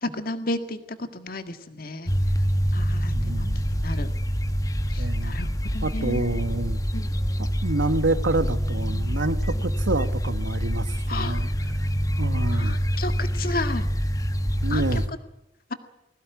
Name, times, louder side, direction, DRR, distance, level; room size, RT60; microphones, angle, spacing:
voice 1, 0.0-0.8 1.1-2.1 2.7-3.1 3.4-3.5 3.8-4.1 4.9-6.4 6.9-7.1 11.1-11.4 12.5-13.9 14.7-14.8, left 2 dB, 50° left, 9 dB, 1.8 m, -32 dB
sound 1, 2.0-15.1, equal, 20° left, 1.1 m, -26 dB
voice 2, 3.1-3.6 5.0-5.3 5.8-6.8 7.4-11.5 12.2-12.8 14.6-15.0, right 2 dB, 80° right, 12 dB, 1.4 m, -28 dB
21.0 x 17.0 x 9.4 m, 0.90 s
head